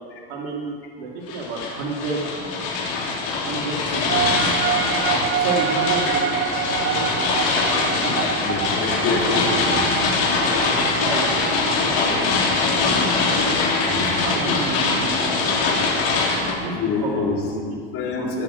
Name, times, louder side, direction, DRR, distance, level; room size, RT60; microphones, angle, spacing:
voice 1, 0.3-2.2 3.4-4.4 5.4-6.4 6.9-7.6 7.9-8.2 11.0-12.5 13.8-15.8 16.6-17.7 18.1-18.4, right 3 dB, 80° right, -2 dB, 2.7 m, -31 dB
sound 1, 1.3-16.5, left 3 dB, 65° left, 4.5 m, -22 dB
sound 2, 4.1-11.8, right 11 dB, 45° right, 0.7 m, -27 dB
voice 2, 8.4-9.9 13.9-14.2 16.7-17.4 17.9-18.4, left 4 dB, 45° left, -1 dB, 3.8 m, -26 dB
18.5 x 6.8 x 8.3 m, 2.2 s
supercardioid pair, 105°, 30 cm